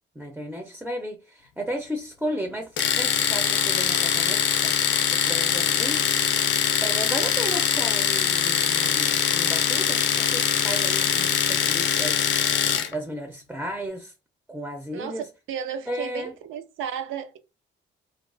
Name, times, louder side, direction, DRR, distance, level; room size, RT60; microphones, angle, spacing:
voice 1, 0.2-4.7 5.1-6.4 6.8-12.3 12.9-14.1 14.5-15.3 15.9-16.3, right 1 dB, 5° right, 0.4 m, -34 dB
Domestic sounds home sounds, 2.8-12.9, left 8 dB, 65° left, 0.4 m, -23 dB
voice 2, 14.9-17.4, right 8 dB, 80° right, 0.4 m, -34 dB
2.3 x 2.2 x 2.4 m
cardioid pair, 90°, 20 cm